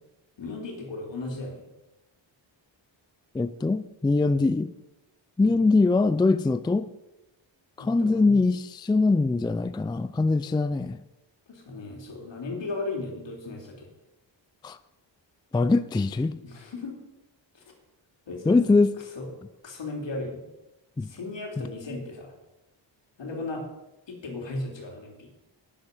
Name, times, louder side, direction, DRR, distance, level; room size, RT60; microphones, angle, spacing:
voice 1, 0.4-1.6 5.4-5.6 7.8-8.4 11.5-13.9 16.4-17.0 17.5-17.6 18.3-18.6 19.1-19.3 19.6-20.4 21.0-22.3 23.2-23.6 24.1-25.3, left 2 dB, 70° left, 3.4 m, -36 dB
voice 2, 3.3-4.7 5.4-6.9 7.8-11.0 14.6-14.8 15.5-16.4 18.5-18.9 21.0-21.1, left 3 dB, 10° left, 0.3 m, -22 dB
11.5 x 10.0 x 5.3 m
wide cardioid pair, 125°, 45 cm